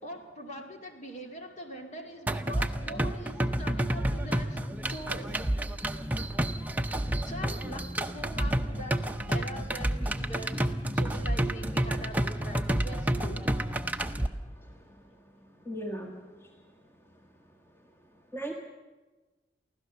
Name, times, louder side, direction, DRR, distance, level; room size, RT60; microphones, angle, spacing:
voice 1, 0.0-4.6 4.9-5.4 6.9-10.6 10.9-13.6, equal, 40° left, 3 dB, 2.3 m, -43 dB
sound 1, 2.3-14.3, right 1 dB, 10° right, 0.8 m, -30 dB
voice 2, 15.7-16.1 18.3-18.5, right 1 dB, 15° left, 2 dB, 1.7 m, -36 dB
24.5 x 16.0 x 6.8 m, 1.3 s
head